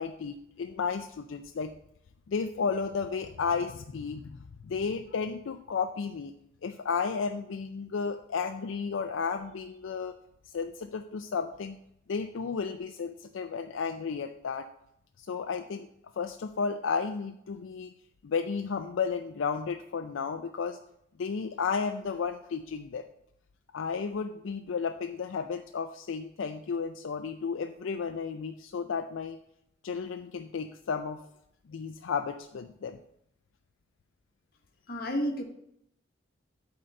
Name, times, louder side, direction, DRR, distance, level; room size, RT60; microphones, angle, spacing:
voice 1, 0.0-1.7 2.3-4.2 4.6-6.3 6.6-10.2 10.5-11.8 12.1-14.7 15.2-15.9 16.2-17.9 18.2-20.8 21.2-23.1 23.7-29.4 29.8-31.2 31.7-33.0, left 5 dB, 75° left, 6 dB, 0.4 m, -33 dB
voice 2, 34.9-35.4, equal, 50° left, 3 dB, 1.2 m, -30 dB
8.7 x 3.9 x 6.4 m, 0.76 s
head